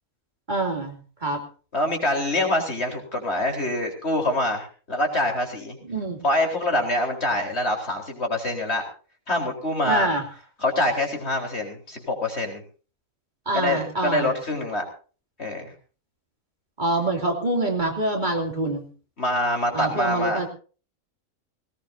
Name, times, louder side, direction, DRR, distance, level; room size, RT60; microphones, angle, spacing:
voice 1, 0.5-1.4 5.8-6.2 9.8-10.2 13.5-14.3 16.8-18.8 19.7-20.5, right 2 dB, 35° right, 2 dB, 3.1 m, -25 dB
voice 2, 1.7-5.8 6.2-8.8 9.3-10.1 10.6-12.6 13.5-14.8 15.4-15.7 19.2-20.4, left 1 dB, 50° left, 2 dB, 4.5 m, -25 dB
20.5 x 18.5 x 2.8 m, 0.38 s
omnidirectional pair, 1.4 m